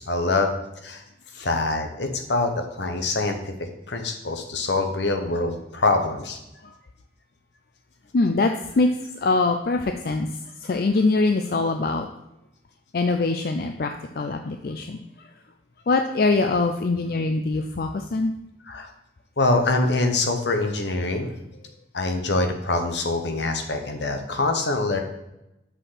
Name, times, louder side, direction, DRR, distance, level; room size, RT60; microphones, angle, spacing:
voice 1, 0.1-0.5 0.8-1.0 1.4-2.5 2.8-3.5 3.9-6.4 18.7-18.9 19.4-21.3 21.9-25.0, left 2 dB, 75° left, 5 dB, 1.1 m, -24 dB
voice 2, 8.1-8.9 9.2-10.3 10.6-12.1 12.9-15.0 15.9-18.3, left 3 dB, 55° left, 6 dB, 0.4 m, -23 dB
6.3 x 5.5 x 5.7 m, 0.89 s
head